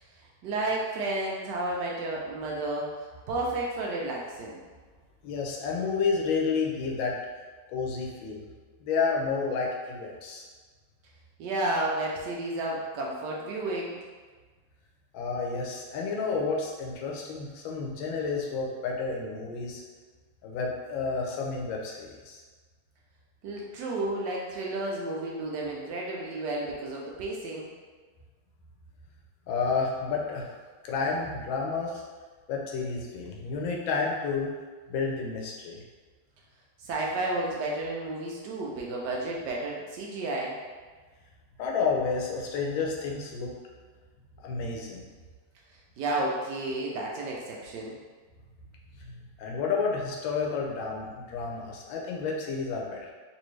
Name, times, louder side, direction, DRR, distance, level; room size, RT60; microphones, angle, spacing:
voice 1, 0.4-4.6 11.4-14.0 23.4-27.7 36.8-40.5 46.0-47.9, right 2 dB, 75° right, -2 dB, 1.1 m, -32 dB
voice 2, 5.2-7.2 7.7-8.5 8.8-10.4 15.1-19.8 20.4-22.4 29.5-30.5 30.8-32.0 32.5-34.5 34.9-35.8 41.6-43.5 44.4-45.1 49.0-53.1, left 4 dB, 85° left, -1 dB, 1.4 m, -30 dB
4.1 x 2.6 x 3.1 m, 1.4 s
omnidirectional pair, 2.1 m